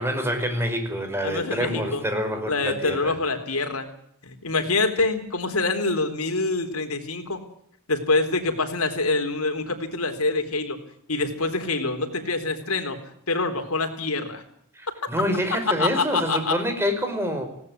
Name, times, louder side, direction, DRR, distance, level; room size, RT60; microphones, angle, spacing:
voice 1, 0.0-3.2 14.8-17.5, equal, 10° right, 6 dB, 5.2 m, -27 dB
voice 2, 1.2-2.0 2.5-3.9 4.2-7.4 7.9-10.8 11.1-13.0 13.3-14.4 15.8-16.5, left 3 dB, 80° left, 7 dB, 4.0 m, -25 dB
19.5 x 18.0 x 9.6 m, 0.69 s
head